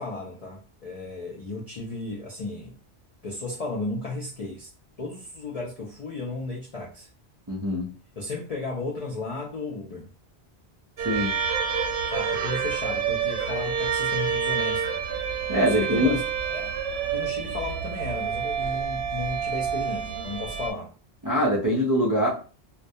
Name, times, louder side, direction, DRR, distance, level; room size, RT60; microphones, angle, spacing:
voice 1, 0.0-2.7 3.2-4.7 5.0-7.1 8.2-10.1 12.1-15.0 15.6-16.2 16.5-16.7 17.1-20.9, left 3 dB, 60° left, -3 dB, 0.4 m, -34 dB
voice 2, 7.5-7.9 11.0-11.3 15.5-16.2 21.2-22.3, equal, 35° right, -4 dB, 0.3 m, -23 dB
sound 1, 11.0-20.7, right 7 dB, 75° right, 0.8 m, -28 dB
2.2 x 2.1 x 2.6 m, 0.37 s
omnidirectional pair, 1.1 m